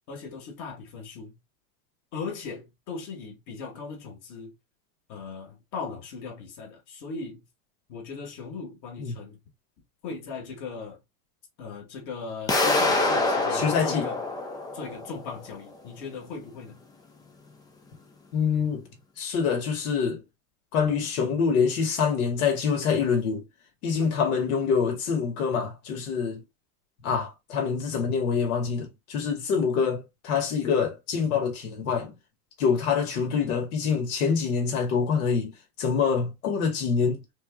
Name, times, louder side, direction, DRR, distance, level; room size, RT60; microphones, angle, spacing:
voice 1, 0.1-1.3 2.1-4.5 5.1-7.4 7.9-9.4 10.0-11.0 11.6-14.2 14.7-16.8, left 4 dB, 40° left, 2.3 m, -38 dB
sound 1, 12.5-15.3, left 2 dB, 10° left, 0.4 m, -25 dB
voice 2, 13.5-14.1 18.3-18.8 19.2-20.2 20.7-23.4 23.8-26.4 27.0-32.1 32.6-35.5 35.8-37.2, left 6 dB, 70° left, 2.6 m, -25 dB
5.3 x 3.7 x 2.5 m
supercardioid pair, 155°, 45 cm